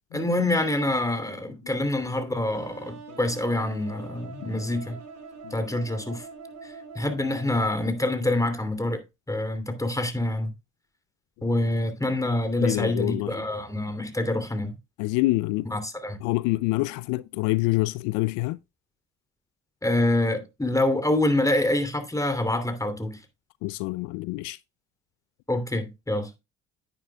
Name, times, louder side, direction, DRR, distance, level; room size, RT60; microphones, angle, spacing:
voice 1, 0.1-5.0 5.5-6.2 6.9-9.0 9.3-10.5 11.4-14.7 15.7-16.2 19.8-23.2 25.5-26.4, left 1 dB, 10° left, 2.8 m, -26 dB
sound 1, 2.5-8.3, right 4 dB, 60° right, 6.3 m, -44 dB
voice 2, 12.6-13.3 15.0-15.7 16.2-18.6 23.6-24.6, left 20 dB, 80° left, 0.5 m, -26 dB
10.0 x 9.7 x 2.3 m
hypercardioid pair, 55°, 30 cm